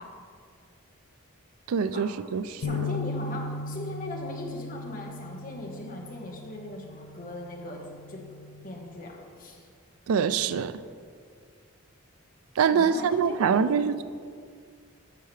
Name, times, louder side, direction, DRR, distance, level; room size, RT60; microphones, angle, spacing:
voice 1, 1.7-2.9 10.1-10.8 12.6-14.0, right 6 dB, 85° right, 13 dB, 0.4 m, -25 dB
sound 1, 2.6-8.9, left 3 dB, 75° left, 0.4 m, -37 dB
voice 2, 2.6-7.8 8.1-8.3 8.6-9.7 12.6-13.6, left 2 dB, 40° left, 0 dB, 1.2 m, -39 dB
13.5 x 5.7 x 3.2 m, 2.1 s
head